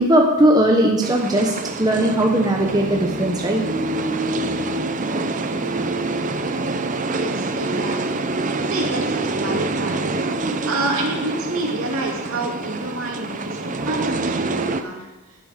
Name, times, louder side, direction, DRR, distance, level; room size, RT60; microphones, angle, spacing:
voice 1, 0.0-1.5 1.8-3.6, right 1 dB, 15° right, 0 dB, 1.1 m, -18 dB
sound 1, 1.0-14.8, right 2 dB, 35° right, 0.6 m, -26 dB
voice 2, 7.1-8.2 8.7-10.1 10.6-15.1, right 2 dB, 70° right, 0 dB, 2.6 m, -28 dB
12.0 x 10.0 x 5.1 m, 1.1 s
head